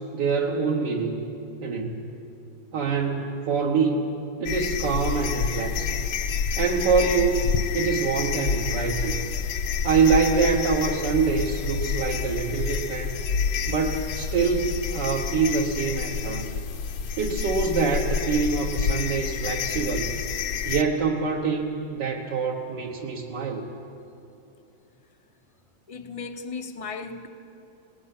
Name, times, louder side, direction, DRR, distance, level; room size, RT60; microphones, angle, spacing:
voice 1, 0.1-1.2 1.6-1.9 2.7-4.0 4.4-6.1 6.6-7.4 7.7-9.2 9.8-13.2 13.7-16.5 17.2-20.1 20.6-23.6, right 5 dB, 70° right, -1 dB, 1.8 m, -25 dB
sound 1, 4.5-20.8, left 6 dB, 75° left, 1.6 m, -28 dB
voice 2, 25.9-27.3, left 4 dB, 40° left, 8 dB, 0.4 m, -36 dB
26.5 x 19.5 x 5.9 m, 2.8 s
omnidirectional pair, 2.0 m